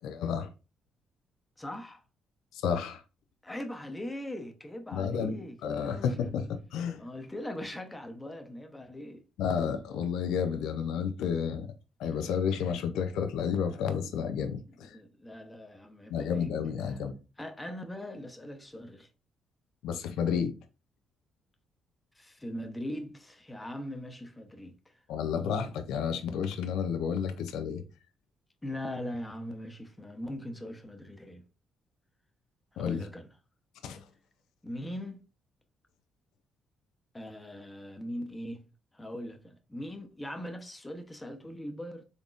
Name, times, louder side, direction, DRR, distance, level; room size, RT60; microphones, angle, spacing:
voice 1, 0.0-0.5 2.5-3.0 4.9-7.0 9.4-11.7 12.0-15.0 16.1-17.1 19.8-20.5 25.1-27.8 32.8-33.0 33.8-34.0, left 7 dB, 90° left, 0.4 m, -31 dB
voice 2, 1.6-2.0 3.4-6.3 7.0-9.2 12.0-12.1 14.8-16.5 16.8-17.0 17.4-19.1 22.1-24.7 28.6-31.4 32.7-33.3 34.6-35.2 37.1-38.6 38.9-42.0, left 1 dB, 10° left, 0.8 m, -40 dB
3.9 x 3.5 x 2.4 m
cardioid pair, 90°, 0 cm